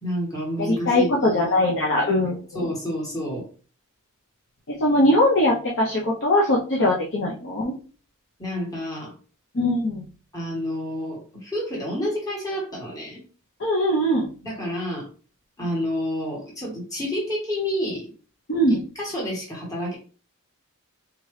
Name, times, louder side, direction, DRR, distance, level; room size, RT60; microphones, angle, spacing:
voice 1, 0.0-3.4 8.4-9.1 10.3-13.2 14.4-15.1 15.6-18.1 18.7-20.0, equal, 15° left, -4 dB, 1.6 m, -29 dB
voice 2, 0.6-2.7 4.8-7.7 9.5-10.0 13.6-14.3 18.5-18.8, left 1 dB, 55° left, -2 dB, 0.8 m, -21 dB
3.7 x 2.9 x 3.1 m, 0.38 s
head